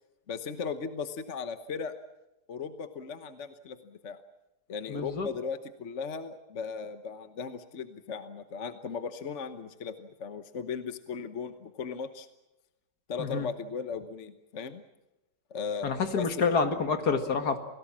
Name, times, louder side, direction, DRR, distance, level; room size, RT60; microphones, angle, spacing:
voice 1, 0.3-2.0 2.5-4.2 4.7-12.3 13.1-14.8 15.5-16.3, left 5 dB, 45° left, 9 dB, 1.3 m, -37 dB
voice 2, 4.9-5.3 13.2-13.5 15.8-17.6, left 5 dB, 65° left, 7 dB, 2.3 m, -28 dB
28.5 x 18.5 x 7.4 m, 1.0 s
omnidirectional pair, 1.8 m